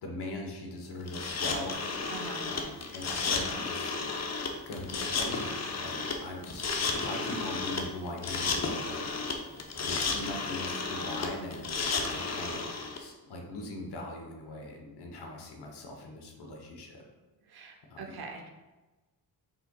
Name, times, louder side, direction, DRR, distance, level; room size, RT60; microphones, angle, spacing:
voice 1, 0.0-2.0 2.4-3.9 4.7-9.1 9.8-12.7 13.0-17.0 17.9-18.0, left 1 dB, 70° left, 1 dB, 1.0 m, -40 dB
sound 1, 1.1-13.0, left 4 dB, 40° left, 0.7 m, -33 dB
voice 2, 2.1-2.5 17.5-18.5, right 4 dB, 65° right, 2 dB, 0.9 m, -43 dB
5.4 x 3.9 x 2.2 m, 1.2 s
cardioid pair, 85°, 41 cm